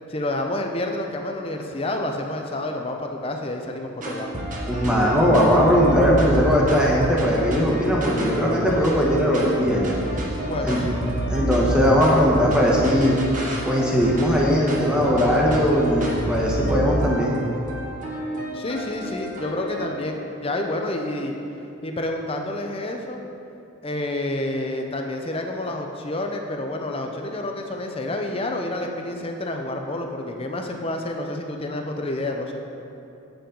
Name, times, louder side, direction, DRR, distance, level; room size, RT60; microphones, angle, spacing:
voice 1, 0.1-4.3 10.4-11.0 18.5-21.3 21.8-23.2 23.8-32.6, left 1 dB, 25° left, 3 dB, 0.5 m, -29 dB
sound 1, 4.0-20.0, right 1 dB, 35° right, 0.9 m, -29 dB
voice 2, 4.7-10.0 10.6-10.9 11.3-13.2 13.6-17.4, equal, 5° right, -4 dB, 1.0 m, -19 dB
8.7 x 6.9 x 3.8 m, 2.8 s
head